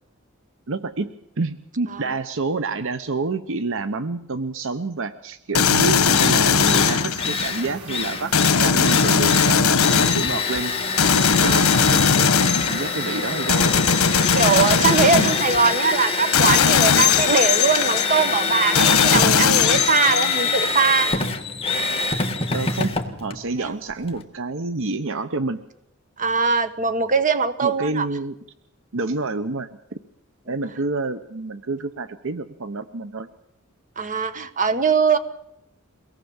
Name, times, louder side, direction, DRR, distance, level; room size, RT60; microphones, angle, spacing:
voice 1, 0.7-1.1 1.4-10.7 11.0-12.3 12.6-13.7 15.1-15.3 22.5-22.9 23.2-25.6 27.6-28.4 28.9-29.7 30.5-33.3, right 3 dB, 65° right, 12 dB, 0.9 m, -28 dB
sound 1, 5.5-7.6 8.3-10.4 11.0-12.9 13.5-15.7 16.3-18.1 18.8-20.4, left 6 dB, 80° left, 1.1 m, -19 dB
Drill, 6.1-24.2, left 4 dB, 25° left, 1.8 m, -26 dB
sound 2, 6.4-15.6, right 4 dB, 90° right, 3.6 m, -40 dB
voice 2, 14.3-21.1 23.6-23.7 26.2-28.1 34.0-35.2, right 5 dB, 35° right, 11 dB, 1.4 m, -21 dB
23.5 x 18.0 x 7.2 m, 0.78 s
head